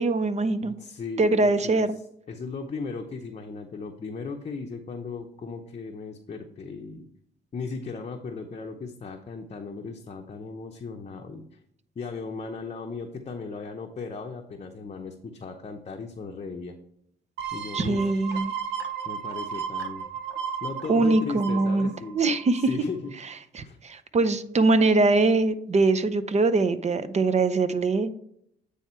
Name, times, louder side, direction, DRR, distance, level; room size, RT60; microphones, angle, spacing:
voice 1, 0.0-0.7 1.2-2.0 17.7-18.5 20.9-22.7 23.5-28.1, right 3 dB, 35° right, 13 dB, 0.6 m, -22 dB
voice 2, 0.6-1.8 2.3-7.1 7.5-11.6 12.0-16.8 17.5-18.1 19.0-20.1 20.6-22.2 22.6-23.1 23.6-23.8, left 4 dB, 35° left, 2 dB, 0.7 m, -37 dB
sound 1, 17.4-22.9 23.3-23.4, right 7 dB, 65° right, 0.9 m, -34 dB
9.0 x 3.5 x 4.4 m, 0.71 s
cardioid pair, 90°, 20 cm